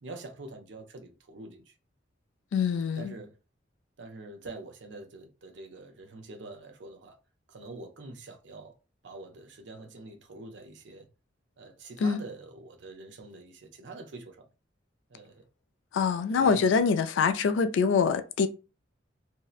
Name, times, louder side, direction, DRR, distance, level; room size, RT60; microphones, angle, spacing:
voice 1, 0.0-1.7 3.0-3.3 4.0-7.2 7.5-8.7 9.0-11.1 11.6-14.4 15.1-15.4 16.4-16.8, right 2 dB, 65° right, 0.5 m, -45 dB
voice 2, 2.5-3.1 12.0-12.2 15.9-18.5, left 5 dB, 80° left, 0.3 m, -24 dB
2.6 x 2.0 x 2.3 m
head